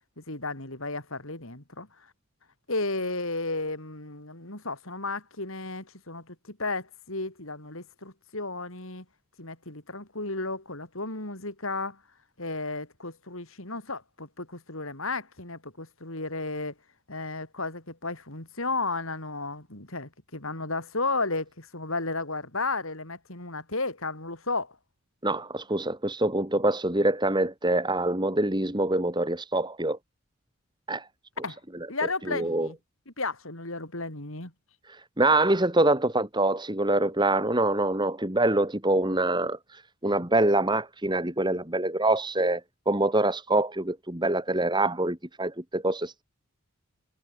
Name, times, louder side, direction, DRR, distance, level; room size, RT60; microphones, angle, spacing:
voice 1, 0.2-1.9 2.7-9.0 9.4-12.0 12.4-16.7 17.1-24.8 31.4-31.6 31.9-32.8 33.1-34.5, left 3 dB, 65° left, 5.0 m, -33 dB
voice 2, 25.2-30.0 30.9-31.1 32.3-32.7 34.9-42.6 42.9-46.2, right 2 dB, 20° right, 2.4 m, -25 dB
head